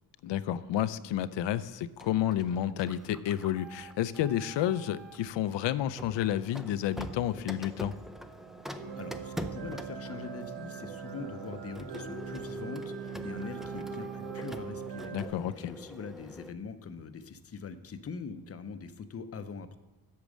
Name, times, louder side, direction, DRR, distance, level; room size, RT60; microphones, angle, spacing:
voice 1, 0.2-7.9 15.1-15.7, left 11 dB, 85° left, 15 dB, 0.6 m, -30 dB
Printer, 2.0-5.3 6.0-16.5, right 1 dB, ahead, 0.4 m, -44 dB
sound 1, 8.8-15.3, right 7 dB, 75° right, 2.9 m, -42 dB
voice 2, 9.0-19.8, left 5 dB, 35° left, 10 dB, 0.7 m, -43 dB
8.6 x 7.4 x 6.3 m, 1.1 s
wide cardioid pair, 135°, 42 cm